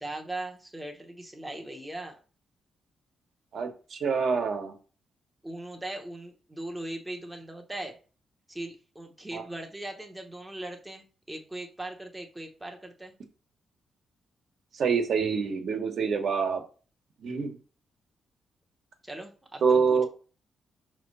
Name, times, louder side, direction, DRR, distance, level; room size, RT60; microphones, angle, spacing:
voice 1, 0.0-2.2 5.4-8.0 8.5-13.1 19.0-20.1, right 1 dB, 5° right, 2 dB, 0.9 m, -39 dB
voice 2, 3.5-4.7 9.3-9.4 14.7-16.6 17.2-17.6 19.6-20.1, right 5 dB, 55° right, 5 dB, 1.2 m, -26 dB
5.8 x 3.2 x 5.4 m, 0.36 s
wide cardioid pair, 165°, 0 cm